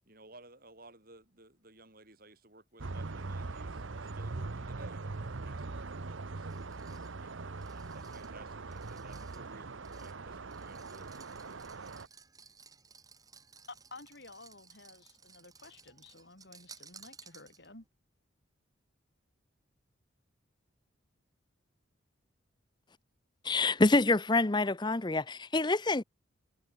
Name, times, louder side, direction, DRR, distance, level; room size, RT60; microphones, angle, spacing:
voice 1, 0.1-6.5 7.2-12.1 25.6-25.8, right 2 dB, 45° right, 7.7 m, -57 dB
sound 1, 2.8-12.1, right 3 dB, 70° right, 0.9 m, -41 dB
sound 2, 6.5-17.9, right 5 dB, 20° right, 5.1 m, -58 dB
voice 2, 13.7-17.9, left 3 dB, 55° left, 5.2 m, -52 dB
voice 3, 23.4-25.2 25.5-26.0, left 2 dB, 20° left, 0.6 m, -26 dB
head